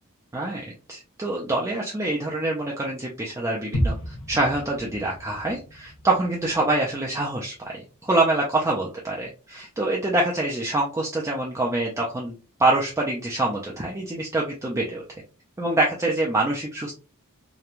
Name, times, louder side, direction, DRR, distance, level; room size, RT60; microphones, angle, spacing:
voice 1, 0.3-15.0 15.6-16.9, right 2 dB, 15° right, -2 dB, 0.3 m, -25 dB
sound 1, 3.7-7.7 8.0-8.1, equal, 65° left, 0.6 m, -32 dB
2.9 x 2.2 x 2.3 m, 0.33 s
head